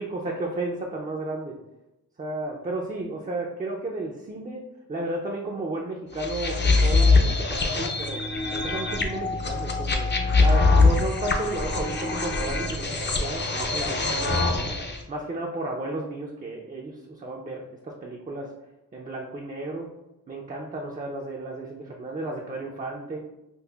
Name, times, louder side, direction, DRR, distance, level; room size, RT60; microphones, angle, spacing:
voice 1, 0.0-1.6 2.2-8.2 8.5-10.1 10.4-14.8 15.1-18.5 18.9-19.9 20.3-23.2, right 2 dB, 25° right, -1 dB, 0.4 m, -33 dB
sound 1, 6.2-15.0, left 3 dB, 30° left, 0.5 m, -23 dB
5.4 x 2.0 x 2.3 m, 0.91 s
cardioid pair, 75°, 37 cm